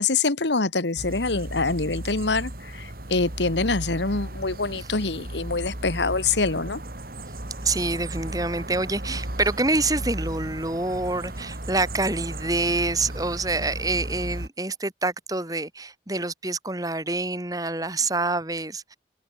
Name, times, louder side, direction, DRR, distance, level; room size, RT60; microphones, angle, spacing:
voice 1, 0.0-6.8, left 3 dB, 80° left, 1.6 m, -25 dB
sound 1, 1.0-14.5, right 1 dB, 55° right, 3.0 m, -35 dB
voice 2, 7.6-19.0, right 2 dB, 20° right, 3.0 m, -26 dB
head